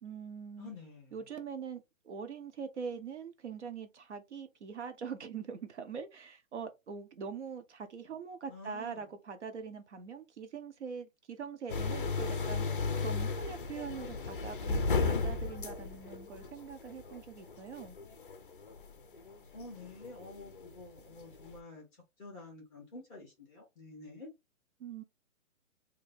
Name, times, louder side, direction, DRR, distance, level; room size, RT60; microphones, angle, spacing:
voice 1, 0.0-0.7 1.1-18.0 24.8-25.0, right 6 dB, 60° right, 0.8 m, -43 dB
voice 2, 0.6-1.2 8.5-9.0 19.5-24.3, left 2 dB, 5° left, 0.9 m, -49 dB
sound 1, 11.7-21.6, left 4 dB, 40° left, 0.5 m, -35 dB
2.7 x 2.6 x 3.9 m
hypercardioid pair, 180°, 40 cm